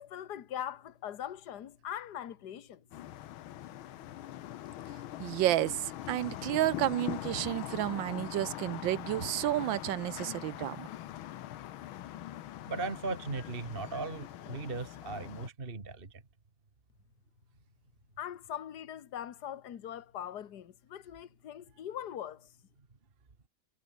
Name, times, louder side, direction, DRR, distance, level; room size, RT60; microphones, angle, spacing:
voice 1, 0.0-2.8 18.2-22.5, left 10 dB, 55° left, 1.8 m, -41 dB
sound 1, 2.9-15.5, left 13 dB, 85° left, 1.7 m, -42 dB
voice 2, 5.2-10.9, right 14 dB, 75° right, 1.3 m, -31 dB
voice 3, 12.6-16.2, right 3 dB, 25° right, 2.2 m, -38 dB
omnidirectional pair, 2.2 m